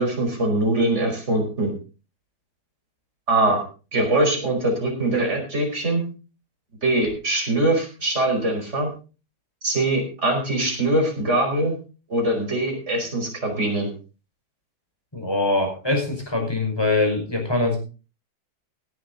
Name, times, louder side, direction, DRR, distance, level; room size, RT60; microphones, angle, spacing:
voice 1, 0.0-1.7 3.3-3.6 3.9-6.0 6.8-8.9 9.6-11.8 12.1-13.9, right 2 dB, 40° right, 1 dB, 5.4 m, -22 dB
voice 2, 15.1-17.8, left 2 dB, 15° left, 2 dB, 5.2 m, -23 dB
17.0 x 11.0 x 4.0 m, 0.34 s
omnidirectional pair, 1.9 m